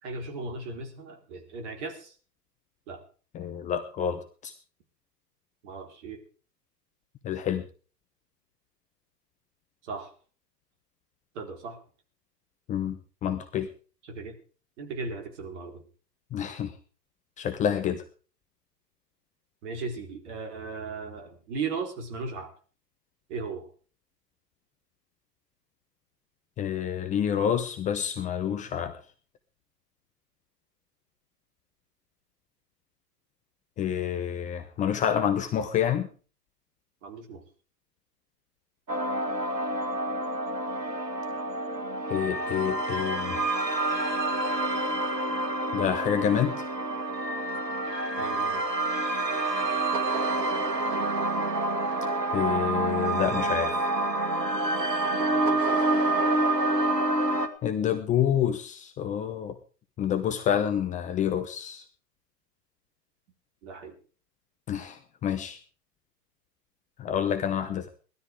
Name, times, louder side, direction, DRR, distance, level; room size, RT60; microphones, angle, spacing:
voice 1, 0.0-2.1 2.9-3.0 5.6-6.2 9.8-10.1 11.3-11.8 14.1-14.4 14.8-15.8 19.6-22.5 23.3-23.7 37.0-37.4 48.2-48.6 55.2-55.8 63.6-64.0, right 4 dB, 45° right, 4 dB, 4.3 m, -37 dB
voice 2, 3.3-4.5 7.2-7.6 12.7-13.7 16.3-16.7 17.4-18.0 26.6-29.0 33.8-36.1 42.1-43.4 45.7-46.5 52.3-53.7 57.6-59.6 60.0-61.8 64.7-65.6 67.0-67.9, left 9 dB, 15° left, 7 dB, 0.9 m, -28 dB
sound 1, 38.9-57.5, right 2 dB, 85° right, 2.5 m, -27 dB
19.0 x 13.0 x 4.8 m, 0.39 s
figure-of-eight pair, 115°, 49 cm